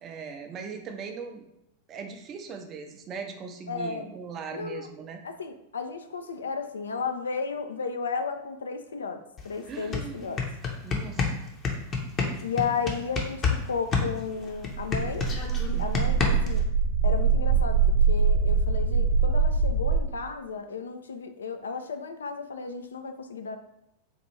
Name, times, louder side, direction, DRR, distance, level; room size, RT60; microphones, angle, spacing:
voice 1, 0.0-1.5 1.9-5.2 9.7-10.4 10.8-11.3 15.7-16.1, right 5 dB, 30° right, 5 dB, 0.5 m, -39 dB
voice 2, 3.7-4.1 4.5-4.9 5.2-9.2 9.4-10.4 12.4-15.3 15.7-16.7 17.0-23.6, left 5 dB, 70° left, 7 dB, 0.3 m, -33 dB
sound 1, 9.4-9.5 9.8-13.6 13.9-16.6, left 4 dB, 25° left, 0.7 m, -28 dB
sound 2, 14.5-20.0, right 5 dB, 50° right, 0.9 m, -23 dB
4.2 x 2.4 x 3.1 m, 0.83 s
figure-of-eight pair, 90°, 0 cm